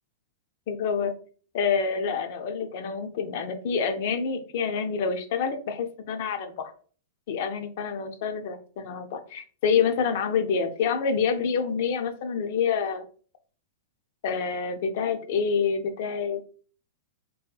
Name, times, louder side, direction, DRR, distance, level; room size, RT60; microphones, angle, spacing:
voice 1, 0.7-1.1 1.5-6.7 7.3-13.1 14.2-16.4, left 6 dB, 60° left, 7 dB, 0.4 m, -27 dB
2.7 x 2.6 x 2.3 m, 0.43 s
hypercardioid pair, 140°, 0 cm